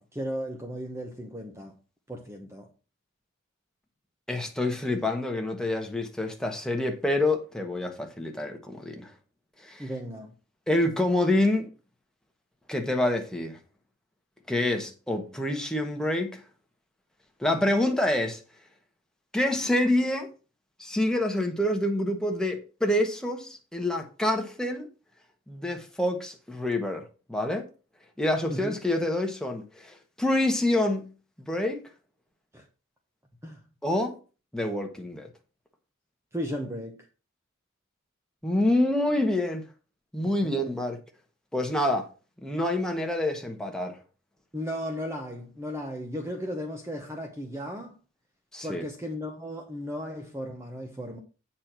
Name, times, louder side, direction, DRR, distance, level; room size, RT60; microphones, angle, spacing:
voice 1, 0.0-1.7 2.1-2.7 9.8-10.3 28.4-28.8 32.5-32.6 33.4-33.6 36.3-37.1 40.4-40.5 44.5-47.9 48.6-51.2, equal, 15° right, 1.0 m, -35 dB
voice 2, 4.3-9.1 9.6-9.9 10.7-11.7 12.7-13.6 14.5-16.4 17.4-18.4 19.3-20.3 20.8-24.9 25.5-27.0 27.3-27.6 28.2-31.1 31.4-31.8 33.8-34.2 34.5-35.3 38.4-39.6 40.1-41.0 41.5-42.1 42.4-44.0 48.5-48.8, left 1 dB, 5° left, 1.3 m, -27 dB
8.5 x 4.4 x 6.0 m
head